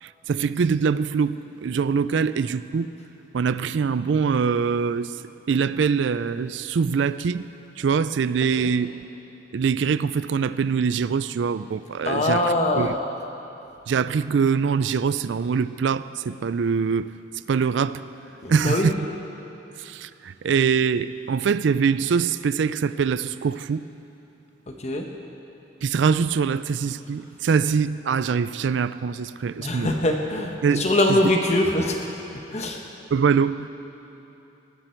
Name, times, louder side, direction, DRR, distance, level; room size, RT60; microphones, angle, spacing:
voice 1, 0.0-2.9 3.3-5.2 5.5-7.4 7.8-8.9 9.5-13.0 13.9-17.1 17.5-18.0 18.5-19.1 19.8-23.9 25.8-29.9 30.6-31.2 33.1-33.7, right 6 dB, 75° right, 15 dB, 0.4 m, -23 dB
voice 2, 12.0-13.0 18.4-18.9 24.8-25.0 29.6-32.1 32.5-32.8, left 1 dB, 35° left, 2 dB, 1.0 m, -23 dB
19.5 x 15.0 x 4.5 m, 2.9 s
head